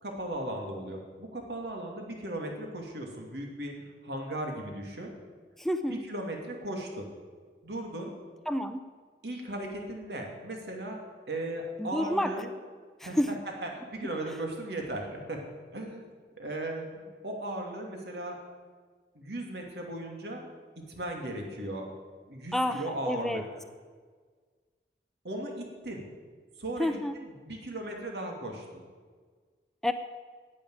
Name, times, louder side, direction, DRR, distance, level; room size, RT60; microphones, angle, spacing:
voice 1, 0.0-3.7 4.0-5.1 5.9-7.1 7.6-8.1 9.2-11.0 11.3-12.5 13.0-13.3 13.6-15.4 15.7-16.0 16.4-18.4 19.1-20.5 20.9-21.9 22.3-23.4 25.2-26.0 26.6-28.8, right 1 dB, 75° right, 1 dB, 2.6 m, -37 dB
voice 2, 5.6-6.0 8.5-8.8 11.8-12.3 13.0-13.3 22.5-23.4 26.8-27.1 29.8-29.9, left 1 dB, ahead, 9 dB, 0.5 m, -29 dB
10.5 x 8.8 x 9.5 m, 1.5 s
head